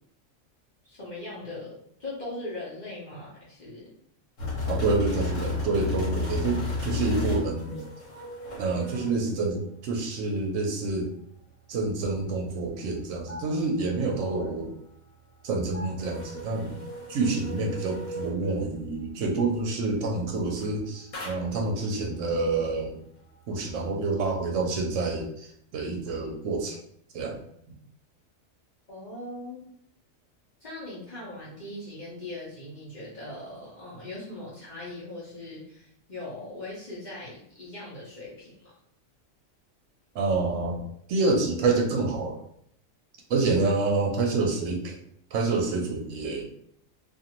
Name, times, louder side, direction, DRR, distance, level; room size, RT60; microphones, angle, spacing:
voice 1, 0.8-3.9 28.9-29.6 30.6-38.7, left 2 dB, 40° left, -6 dB, 0.9 m, -40 dB
sound 1, 4.4-9.2 13.3-14.7 15.7-18.4 20.5-20.8 21.1-21.6, left 3 dB, 70° left, 1.3 m, -33 dB
voice 2, 4.7-7.8 8.6-11.1 11.7-14.7 15.4-16.8 17.1-23.0 23.5-26.8 27.1-27.4 40.1-40.8 41.1-42.4 43.3-45.0 45.3-46.5, right 3 dB, 75° right, 1 dB, 0.9 m, -27 dB
2.5 x 2.5 x 2.9 m, 0.68 s
omnidirectional pair, 1.4 m